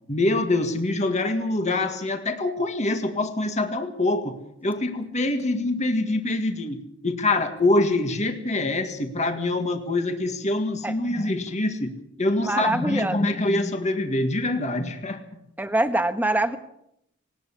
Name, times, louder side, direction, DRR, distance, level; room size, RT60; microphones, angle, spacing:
voice 1, 0.1-4.3 4.6-6.8 7.0-15.2, left 2 dB, 35° left, 6 dB, 1.9 m, -25 dB
voice 2, 12.4-13.2 15.6-16.6, right 1 dB, 10° right, 8 dB, 1.4 m, -24 dB
20.0 x 19.0 x 7.3 m, 0.76 s
head